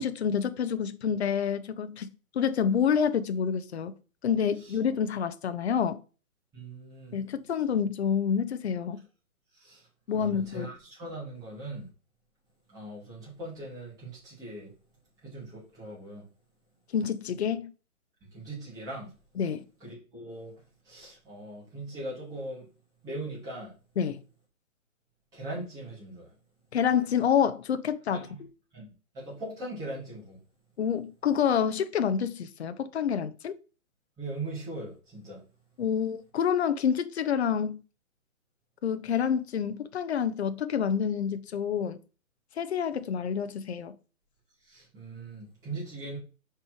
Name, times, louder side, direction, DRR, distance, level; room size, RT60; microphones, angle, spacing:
voice 1, 0.0-3.9 4.2-6.0 7.1-9.0 10.1-10.7 16.9-17.7 19.4-19.6 24.0-24.2 26.7-28.5 30.8-33.6 35.8-37.8 38.8-42.0 42.6-44.0, left 7 dB, 50° left, 0.6 m, -28 dB
voice 2, 6.5-7.2 9.5-9.9 10.2-11.9 12.7-14.7 15.2-16.3 18.2-19.1 19.8-20.5 20.8-22.7 23.0-23.7 25.3-26.3 28.1-28.4 28.7-30.4 34.2-35.4 44.6-46.2, right 2 dB, 10° right, 2.6 m, -40 dB
5.2 x 4.4 x 4.5 m
hypercardioid pair, 165°, 42 cm